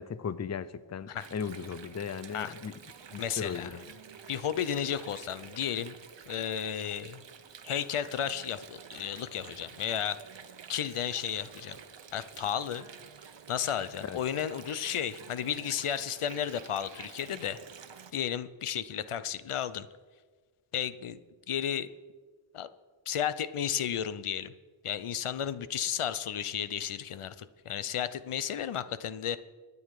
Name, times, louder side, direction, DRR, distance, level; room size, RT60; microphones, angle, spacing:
voice 1, 0.0-2.7 3.1-3.9 14.0-14.2, left 6 dB, 35° left, 16 dB, 0.5 m, -37 dB
Water, 1.2-18.1, right 7 dB, 60° right, 1.0 m, -49 dB
voice 2, 3.2-3.7 4.3-6.0 6.3-7.2 7.6-10.2 10.7-11.8 12.1-12.9 13.5-17.6 18.1-19.9 20.7-21.2 21.5-21.9 22.5-22.7 23.1-24.5 24.8-29.4, left 9 dB, 85° left, 14 dB, 0.8 m, -33 dB
24.5 x 9.7 x 4.8 m, 1.4 s
wide cardioid pair, 105°, 49 cm